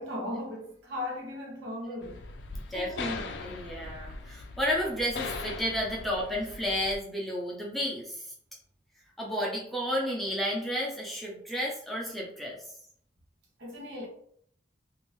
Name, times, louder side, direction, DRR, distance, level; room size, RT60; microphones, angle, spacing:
voice 1, 0.0-2.3 2.7-3.2 13.6-14.1, left 1 dB, 80° right, 1.0 m, -37 dB
sound 1, 2.0-7.0, left 3 dB, 70° left, 0.4 m, -40 dB
voice 2, 2.7-8.2 9.2-12.6, equal, ahead, 0.6 m, -32 dB
2.7 x 2.5 x 3.0 m
head